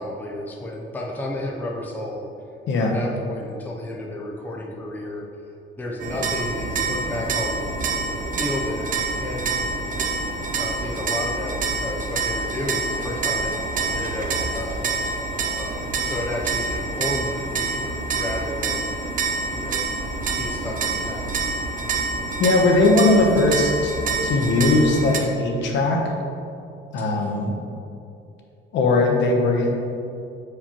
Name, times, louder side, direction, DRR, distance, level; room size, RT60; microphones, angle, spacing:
voice 1, 0.0-2.3 2.8-10.2 10.6-13.6 13.9-14.9 15.6-19.0 19.5-19.9 20.3-21.4 27.0-27.1, left 1 dB, 10° left, -1 dB, 0.5 m, -32 dB
sound 1, 6.0-25.2, right 3 dB, 40° right, 0.6 m, -27 dB
voice 2, 22.4-23.9 24.2-26.1 26.9-27.6 28.7-29.7, left 2 dB, 65° left, 1 dB, 0.9 m, -19 dB
6.9 x 4.8 x 2.9 m, 2.6 s
cardioid pair, 155°, 20 cm